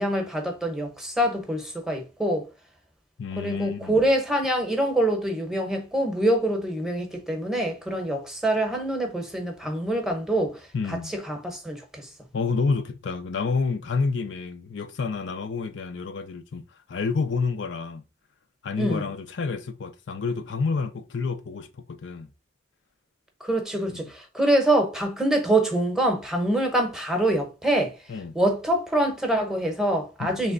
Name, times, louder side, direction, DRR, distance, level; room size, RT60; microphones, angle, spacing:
voice 1, 0.0-2.5 3.4-10.6 10.9-11.0 11.3-12.1 18.8-19.0 23.4-27.9 28.3-30.5, right 1 dB, 5° right, 0.8 m, -25 dB
voice 2, 3.2-4.0 10.7-11.1 12.3-18.0 18.6-22.3 23.9-24.1 28.1-28.4 30.2-30.4, left 4 dB, 75° left, 0.5 m, -29 dB
3.3 x 3.1 x 3.7 m
head